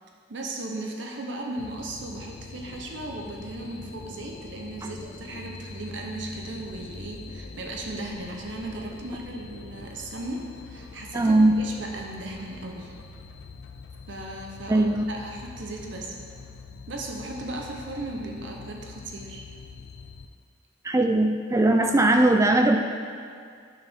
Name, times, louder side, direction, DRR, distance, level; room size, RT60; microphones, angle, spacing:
voice 1, 0.3-12.9 14.1-16.2 16.9-19.5, right 2 dB, 65° right, 1 dB, 0.8 m, -36 dB
sound 1, 1.6-20.3, left 4 dB, 70° left, 0.5 m, -44 dB
voice 2, 11.1-11.6 14.7-15.1 20.8-22.8, right 2 dB, 15° right, 4 dB, 0.3 m, -20 dB
9.0 x 6.3 x 3.6 m, 2.2 s
head